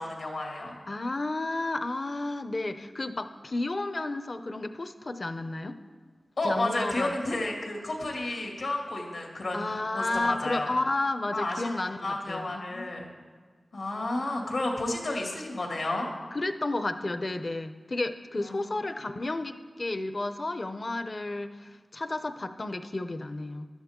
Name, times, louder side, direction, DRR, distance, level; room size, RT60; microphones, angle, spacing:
voice 1, 0.0-0.8 6.4-10.7 11.3-11.7 12.0-13.1 13.7-16.1 18.4-18.8, left 2 dB, 90° left, 0 dB, 2.4 m, -31 dB
voice 2, 0.9-5.8 6.4-7.2 9.5-12.9 16.3-23.7, left 2 dB, 45° left, 10 dB, 0.6 m, -32 dB
15.5 x 11.5 x 3.7 m, 1.5 s
wide cardioid pair, 75°, 0 cm